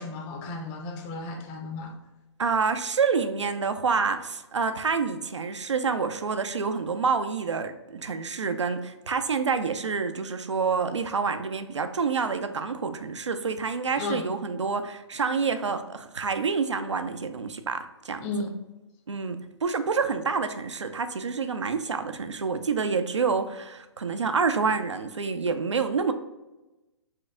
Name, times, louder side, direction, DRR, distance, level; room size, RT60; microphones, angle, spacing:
voice 1, 0.0-1.9 14.0-14.3 18.2-18.7, left 2 dB, 25° left, 3 dB, 0.5 m, -34 dB
voice 2, 2.4-18.3 19.1-26.1, right 5 dB, 85° right, 8 dB, 0.4 m, -28 dB
4.4 x 2.3 x 3.6 m, 1.0 s
figure-of-eight pair, 130°, 15 cm